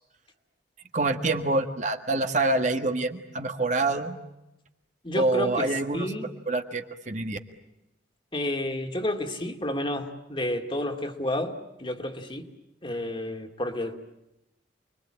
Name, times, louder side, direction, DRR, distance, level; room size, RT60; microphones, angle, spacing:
voice 1, 0.9-4.2 5.1-6.1 6.5-7.4, right 2 dB, 40° right, 6 dB, 1.6 m, -26 dB
voice 2, 5.0-6.3 8.3-12.5 12.8-14.0, left 1 dB, 30° left, 4 dB, 2.4 m, -31 dB
29.0 x 22.5 x 8.9 m, 0.91 s
head